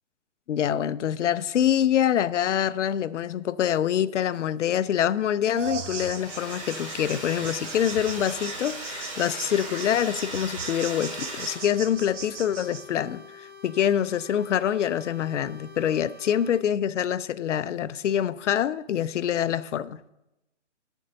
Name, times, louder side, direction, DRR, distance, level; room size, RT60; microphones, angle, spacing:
voice 1, 0.5-20.0, left 10 dB, 75° left, 0.5 m, -25 dB
sound 1, 5.6-12.8, right 5 dB, 80° right, 0.9 m, -39 dB
Domestic sounds home sounds, 5.9-11.9, right 1 dB, 25° right, 1.3 m, -37 dB
sound 2, 10.9-16.6, left 5 dB, 65° right, 2.6 m, -47 dB
10.5 x 4.5 x 6.4 m
hypercardioid pair, 170°, 36 cm